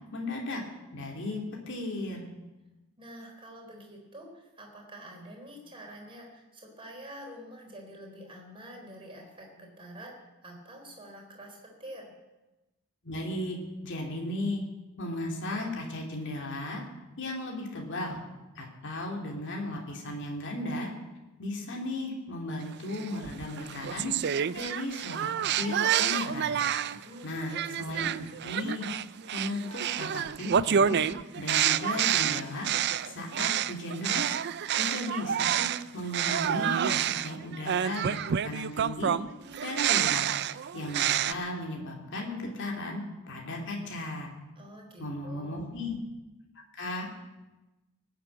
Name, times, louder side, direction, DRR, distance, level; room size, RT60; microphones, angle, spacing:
voice 1, 0.1-0.6 0.9-1.4 1.7-2.3 13.0-14.6 15.0-16.8 17.2-18.2 18.5-20.9 21.4-24.1 24.5-26.6 27.2-28.9 29.3-31.0 31.3-32.7 33.0-34.4 34.8-39.1 39.6-40.2 40.7-44.3 45.0-46.0 46.7-47.1, left 1 dB, 55° left, 0 dB, 2.8 m, -35 dB
voice 2, 3.0-10.1 10.4-12.1 26.9-27.7 44.6-45.7, right 1 dB, 25° right, -1 dB, 4.0 m, -47 dB
sound 1, 22.9-27.0 27.5-35.8 36.1-41.3, right 9 dB, 50° right, 0.4 m, -28 dB
19.5 x 7.8 x 8.8 m, 1.1 s
head